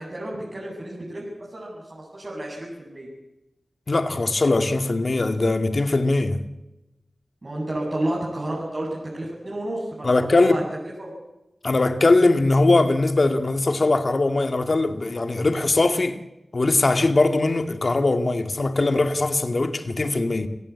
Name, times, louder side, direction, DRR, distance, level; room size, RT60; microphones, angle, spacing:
voice 1, 0.0-3.1 7.4-8.9 9.1-10.6 11.0-11.1, right 1 dB, 45° right, 7.9 m, -31 dB
voice 2, 3.9-6.4 10.0-10.6 11.6-16.2 16.5-20.5, left 2 dB, 60° left, 2.2 m, -21 dB
29.0 x 16.5 x 8.5 m
cardioid pair, 40°, 0 cm